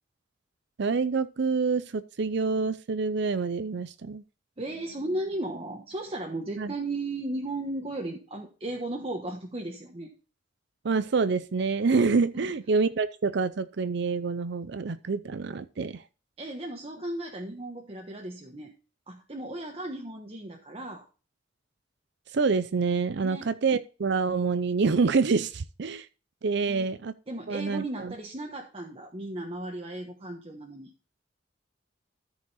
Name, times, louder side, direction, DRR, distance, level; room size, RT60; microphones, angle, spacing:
voice 1, 0.8-4.2 6.6-6.7 10.8-16.0 22.3-26.1 26.4-27.1 27.5-28.1, right 4 dB, 65° right, 0.5 m, -27 dB
voice 2, 4.6-10.1 12.3-12.5 16.4-18.7 19.1-21.0 23.2-23.5 26.7-26.9 27.3-30.9, right 1 dB, 30° right, 1.2 m, -35 dB
13.5 x 5.1 x 4.1 m
head